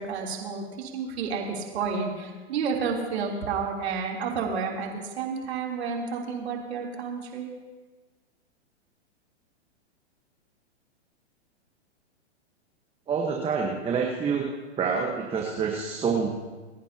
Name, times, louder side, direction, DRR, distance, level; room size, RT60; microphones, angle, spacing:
voice 1, 0.0-7.5, right 5 dB, 70° right, -1 dB, 3.5 m, -31 dB
voice 2, 13.1-14.4 14.8-16.3, right 6 dB, 15° right, 1 dB, 1.3 m, -27 dB
29.5 x 11.0 x 2.9 m, 1.3 s
hypercardioid pair, 130°, 34 cm